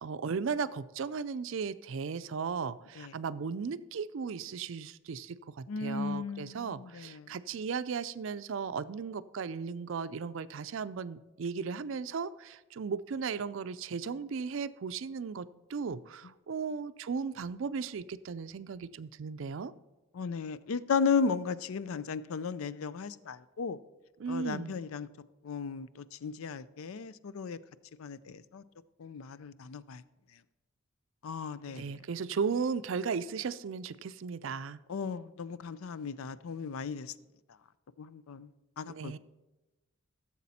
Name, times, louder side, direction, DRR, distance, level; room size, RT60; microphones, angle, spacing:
voice 1, 0.0-19.7 24.2-24.8 31.7-34.8 38.9-39.2, right 5 dB, 65° right, 0.4 m, -36 dB
voice 2, 5.7-7.3 20.1-23.8 24.3-25.1 25.4-27.6 28.0-28.6 29.0-30.0 31.2-31.9 34.9-37.1 38.0-38.5 38.8-39.2, left 5 dB, 80° left, 0.5 m, -35 dB
15.0 x 7.3 x 4.2 m
head